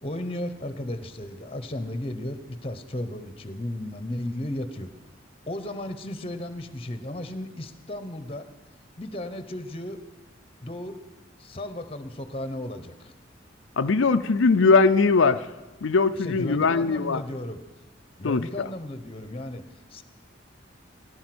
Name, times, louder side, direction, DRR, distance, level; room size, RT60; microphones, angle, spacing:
voice 1, 0.0-4.9 5.5-8.5 9.0-10.0 10.6-11.0 11.4-13.1 16.2-17.6 18.2-20.0, left 1 dB, 30° left, 1.1 m, -34 dB
voice 2, 13.8-15.5 15.8-17.2 18.2-18.4, left 4 dB, 85° left, 0.5 m, -20 dB
18.0 x 11.5 x 6.1 m
head